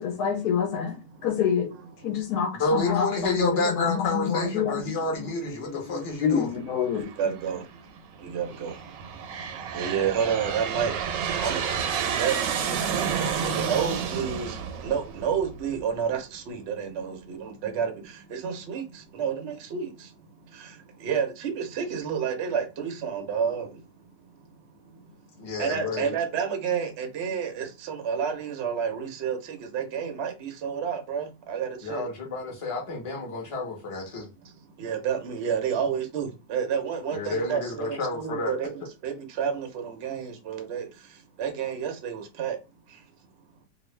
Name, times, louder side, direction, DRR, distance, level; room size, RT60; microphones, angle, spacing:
voice 1, 0.0-1.7 2.0-7.0, left 7 dB, 70° left, 1.1 m, -28 dB
voice 2, 2.6-6.5 25.4-26.2 31.8-34.3 37.1-38.6, left 3 dB, 25° left, 0.7 m, -29 dB
voice 3, 7.0-7.6 8.2-8.7 9.7-10.9 11.4-11.6 12.0-14.6 14.8-17.9 18.3-18.8 19.1-19.9 21.0-23.7 25.6-32.1 34.8-38.7 39.0-40.9 41.4-42.6, right 7 dB, 60° right, 0.6 m, -30 dB
Aircraft, 7.0-7.5 8.2-15.8, right 7 dB, 90° right, 1.3 m, -30 dB
2.9 x 2.5 x 3.1 m
omnidirectional pair, 1.9 m